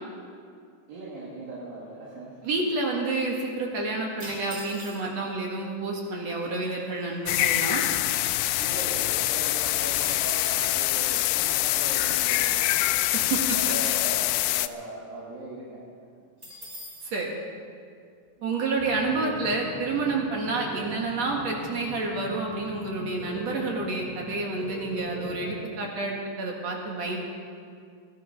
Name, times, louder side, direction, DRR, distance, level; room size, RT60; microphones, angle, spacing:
voice 1, 0.9-2.3 8.6-12.7 13.3-15.8 16.1-16.2 18.4-18.6, right 2 dB, 85° right, -7 dB, 4.3 m, -39 dB
voice 2, 2.4-7.8 13.1-13.4 17.1-17.3 18.4-27.2, right 3 dB, 55° right, -1 dB, 2.7 m, -29 dB
sound 1, 4.2-5.3 6.1-6.2 6.4-6.7 7.1-8.6 9.0-9.1 9.3-10.7 16.4-17.1, right 1 dB, 25° right, 5.7 m, -43 dB
sound 2, 7.3-14.7, left 16 dB, 90° left, 2.3 m, -25 dB
sound 3, 18.8-25.7, left 1 dB, 45° left, 0.7 m, -41 dB
20.0 x 12.0 x 5.2 m, 2.2 s
omnidirectional pair, 4.0 m